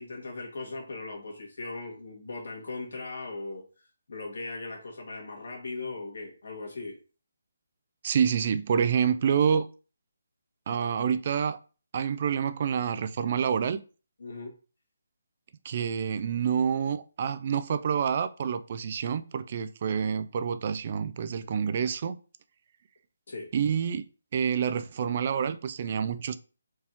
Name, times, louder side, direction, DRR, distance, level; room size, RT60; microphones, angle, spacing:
voice 1, 0.0-3.6 4.1-7.0 14.2-14.5 23.3-23.5, left 3 dB, 70° left, 2.0 m, -38 dB
voice 2, 8.0-9.7 10.7-11.6 11.9-13.8 15.6-22.2 23.5-24.0 24.3-26.4, right 7 dB, 40° right, 0.4 m, -27 dB
4.6 x 3.4 x 2.9 m
hypercardioid pair, 160°, 0 cm